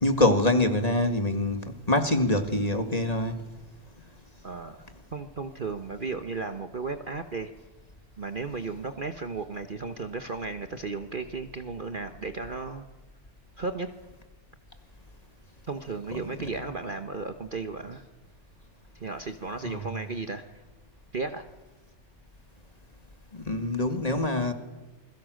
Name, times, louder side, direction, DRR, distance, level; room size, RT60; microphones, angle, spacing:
voice 1, 0.0-3.4 16.1-16.2 19.6-19.9 23.3-24.5, left 2 dB, 25° left, 7 dB, 2.0 m, -25 dB
voice 2, 4.4-4.9 5.1-7.5 8.2-12.8 13.6-13.9 15.7-18.0 19.0-20.4 21.1-21.4, right 4 dB, 40° right, 7 dB, 1.1 m, -34 dB
28.5 x 22.0 x 6.5 m, 1.2 s
omnidirectional pair, 1.6 m